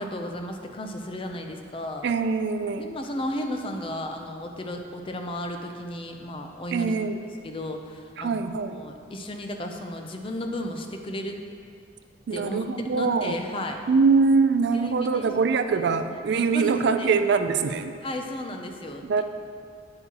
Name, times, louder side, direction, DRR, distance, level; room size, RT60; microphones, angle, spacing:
voice 1, 0.0-2.1 2.8-7.0 7.4-8.4 8.7-11.4 12.3-12.6 12.9-13.8 14.7-15.6 16.5-17.2 18.0-19.2, left 1 dB, 30° left, 4 dB, 0.5 m, -34 dB
voice 2, 2.0-2.9 6.7-7.2 8.2-8.8 12.3-13.4 13.9-18.0 19.1-19.2, right 4 dB, 60° right, 9 dB, 0.3 m, -23 dB
8.7 x 8.2 x 2.9 m, 2.3 s
head